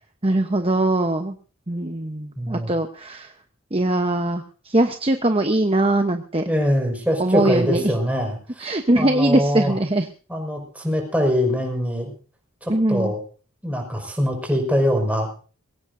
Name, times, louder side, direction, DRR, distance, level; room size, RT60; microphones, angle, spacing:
voice 1, 0.2-1.4 1.7-3.3 3.7-6.4 7.2-7.9 8.6-10.1 12.7-13.1, right 1 dB, 25° right, 6 dB, 1.0 m, -21 dB
voice 2, 2.4-2.7 6.5-9.8 10.3-12.1 12.6-13.2 13.6-15.5, equal, 5° right, 1 dB, 5.6 m, -23 dB
22.5 x 18.0 x 2.7 m, 0.39 s
head